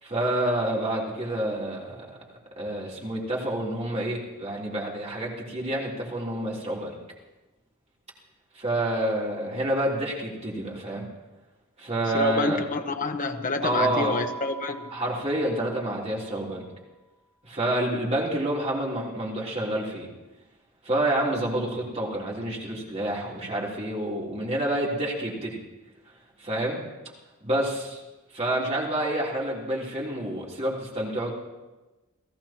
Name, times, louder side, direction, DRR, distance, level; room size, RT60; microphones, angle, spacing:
voice 1, 0.0-2.1 2.6-7.0 8.6-11.1 11.8-12.6 13.6-14.2 14.9-16.6 17.4-20.1 20.8-25.6 26.4-26.8 27.4-28.0 28.3-31.3, right 1 dB, 30° right, -4 dB, 3.6 m, -28 dB
voice 2, 12.1-14.9, left 3 dB, 35° left, 5 dB, 1.0 m, -28 dB
Keyboard (musical), 13.7-16.2, right 4 dB, 10° right, 4.0 m, -39 dB
29.5 x 16.0 x 3.0 m, 1.1 s
head